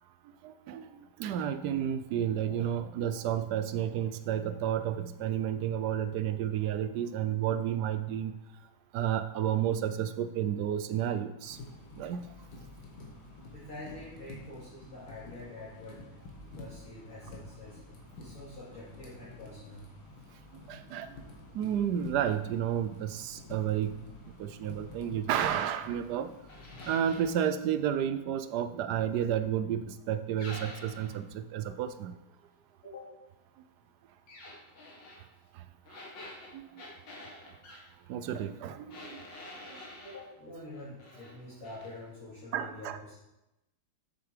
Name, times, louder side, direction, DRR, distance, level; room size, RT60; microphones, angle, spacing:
voice 1, 0.4-8.3 8.9-11.6 12.0-12.3 20.7-21.2 21.5-24.0 24.4-26.3 26.9-32.1 35.5-35.7 36.5-36.8 38.1-39.2 39.7-39.8 42.5-43.0, right 10 dB, 70° right, 11 dB, 1.0 m, -31 dB
sound 1, 11.5-27.4, left 2 dB, 85° left, 2.2 m, -50 dB
voice 2, 13.5-16.0 16.4-17.8 18.2-19.9 32.8-33.2 40.0-43.1, left 2 dB, 45° left, -10 dB, 2.9 m, -46 dB
sound 2, 26.5-27.3 30.4-31.2 34.3-35.2 35.9-37.8 38.9-40.2 40.7-41.3 41.6-41.9, left 1 dB, 70° left, 2.5 m, -47 dB
8.1 x 6.9 x 4.9 m, 0.93 s
omnidirectional pair, 2.1 m